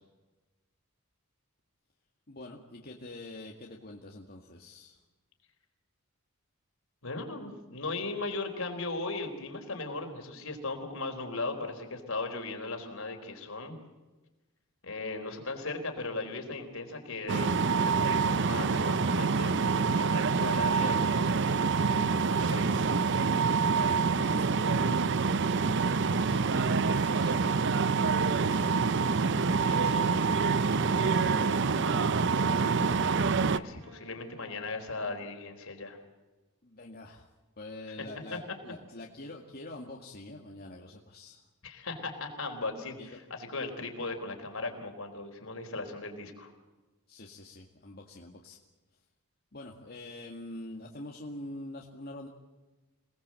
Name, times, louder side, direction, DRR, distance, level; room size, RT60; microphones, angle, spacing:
voice 1, 2.3-5.0 23.8-25.5 27.1-27.2 28.0-29.1 30.9-32.2 36.6-37.3 37.6-41.5 43.0-43.2 47.1-48.6 49.5-52.3, left 1 dB, 45° left, -1 dB, 2.0 m, -45 dB
voice 2, 7.0-13.8 14.8-22.9 26.1-27.4 29.6-30.3 33.1-33.3 33.5-36.0 38.0-38.4 41.6-46.5, left 3 dB, 70° left, 4 dB, 4.4 m, -38 dB
sound 1, 17.3-33.6, right 5 dB, 55° right, 0.7 m, -26 dB
Wind instrument woodwind instrument, 33.2-35.3, right 3 dB, 85° right, 2.8 m, -54 dB
27.5 x 19.5 x 7.7 m, 1.2 s
head